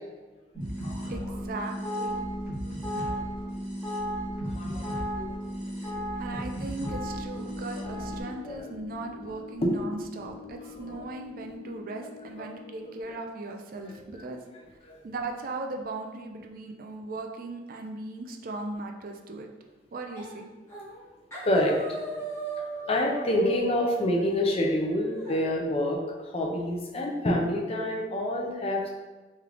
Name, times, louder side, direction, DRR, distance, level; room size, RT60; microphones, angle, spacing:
sound 1, 0.5-8.2, equal, 10° right, 1.4 m, -34 dB
voice 1, 1.1-2.1 6.2-14.4 15.0-19.5 19.9-20.5, right 2 dB, 50° right, 3 dB, 0.4 m, -38 dB
voice 2, 4.5-5.4 5.8-5.9 7.8-7.9 8.3-8.7 9.6-9.8 10.8-10.9 12.4-12.5 13.9-14.2 14.9-15.0 21.4-22.3 22.6-28.9, left 1 dB, 35° left, -1 dB, 0.6 m, -28 dB
sound 2, 6.8-13.4, left 6 dB, 90° left, 0.6 m, -46 dB
sound 3, 20.2-20.4 20.7-21.0 21.3-25.4, right 2 dB, 15° left, 1.0 m, -38 dB
3.3 x 3.1 x 3.7 m, 1.2 s
head